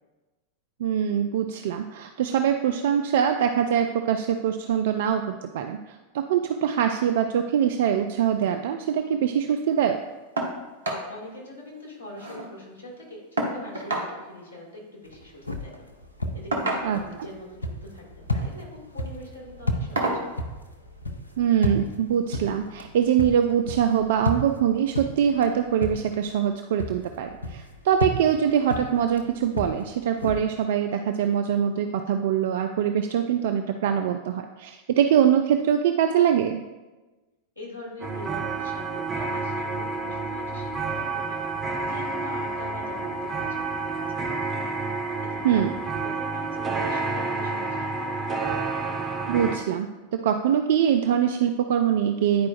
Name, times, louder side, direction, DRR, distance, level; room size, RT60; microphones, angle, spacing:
voice 1, 0.8-5.8 6.1-10.0 16.8-17.0 21.4-36.6 45.4-45.7 49.3-52.5, right 9 dB, 55° right, 6 dB, 0.3 m, -23 dB
sound 1, 10.4-10.6 10.8-11.1 11.4-11.5 11.8-12.5 13.4-14.1 15.3-15.5 16.5-17.2 18.2-18.5 19.0-19.2 20.0-20.3 21.5-21.6 22.1-22.2, right 2 dB, 70° right, 1.0 m, -29 dB
voice 2, 11.1-15.8 16.3-20.4 37.6-41.4 41.9-44.8 45.2-48.5, left 1 dB, 90° right, -4 dB, 2.1 m, -43 dB
sound 2, 15.0-26.5 26.8-30.3, left 1 dB, 80° left, 0.6 m, -33 dB
sound 3, 38.0-49.6, right 3 dB, 25° right, 0.7 m, -29 dB
10.0 x 4.6 x 2.5 m, 1.2 s
figure-of-eight pair, 90°, 0 cm